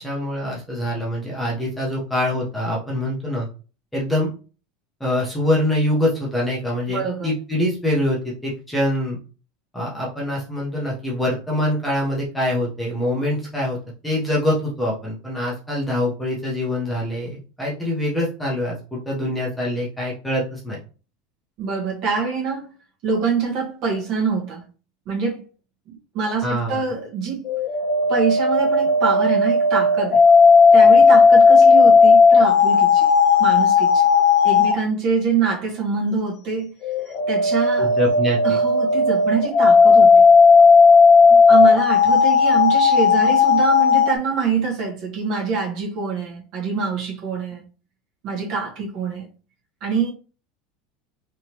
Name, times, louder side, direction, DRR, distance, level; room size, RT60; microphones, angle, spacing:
voice 1, 0.0-3.5 3.9-4.3 5.0-9.2 9.7-13.8 14.0-20.8 26.4-26.8 37.8-38.6, left 1 dB, 5° left, 0.8 m, -24 dB
voice 2, 6.9-7.3 21.6-22.7 23.0-24.6 25.1-25.4 25.9-27.5 28.1-30.2 30.7-33.1 33.4-34.0 34.4-36.7 37.0-37.9 38.4-40.2 41.3-47.6 48.2-49.3 49.8-50.1, right 5 dB, 40° right, 1.2 m, -25 dB
sound 1, 27.4-34.8 36.8-44.1, left 4 dB, 30° left, 0.4 m, -14 dB
3.4 x 3.0 x 2.9 m
supercardioid pair, 175°, 0 cm